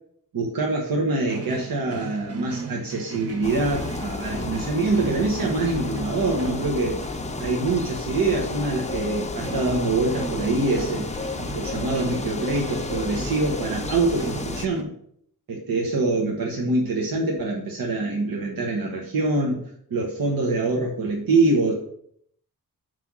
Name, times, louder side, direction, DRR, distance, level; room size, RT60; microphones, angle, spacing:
voice 1, 0.3-7.0 7.4-11.1 11.5-14.9 15.5-19.6 19.9-21.8, right 3 dB, 80° right, -1 dB, 1.2 m, -24 dB
sound 1, 1.2-14.8, right 5 dB, 45° right, 0.7 m, -39 dB
sound 2, 3.4-14.7, left 3 dB, 20° left, 0.4 m, -32 dB
7.6 x 3.4 x 6.0 m, 0.67 s
wide cardioid pair, 170°, 34 cm